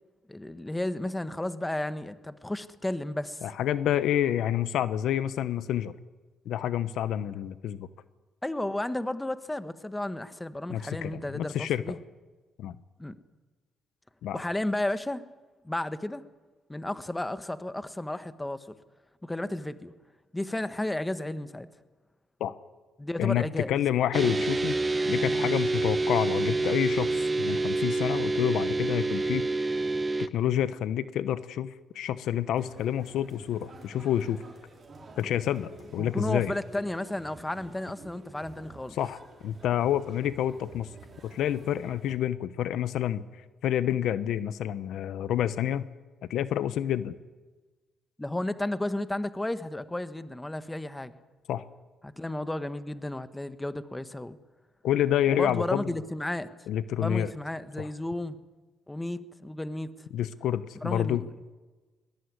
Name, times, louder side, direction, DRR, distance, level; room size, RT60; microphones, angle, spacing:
voice 1, 0.3-3.4 8.4-12.0 13.0-13.2 14.3-15.2 15.6-16.2 16.7-18.7 19.2-19.9 20.3-21.7 23.0-23.8 36.0-39.0 48.2-51.1 52.0-54.4 55.3-56.5 57.0-58.4 58.9-59.9 60.8-61.3, left 1 dB, 10° left, 12 dB, 1.4 m, -33 dB
voice 2, 3.4-5.9 6.5-7.9 10.7-11.9 12.6-12.8 14.2-14.4 22.4-22.5 23.2-24.8 25.1-29.8 30.2-34.4 35.2-36.5 39.0-40.9 41.2-43.2 43.6-45.9 46.3-47.1 51.5-51.6 54.8-55.9 56.7-57.3 57.8-57.9 60.1-61.2, left 11 dB, 80° left, 15 dB, 0.9 m, -28 dB
sound 1, 24.1-30.3, right 2 dB, 25° right, 1.1 m, -27 dB
sound 2, 32.6-42.1, right 3 dB, 40° right, 6.0 m, -50 dB
21.0 x 20.5 x 9.7 m, 1.3 s
cardioid pair, 90°, 0 cm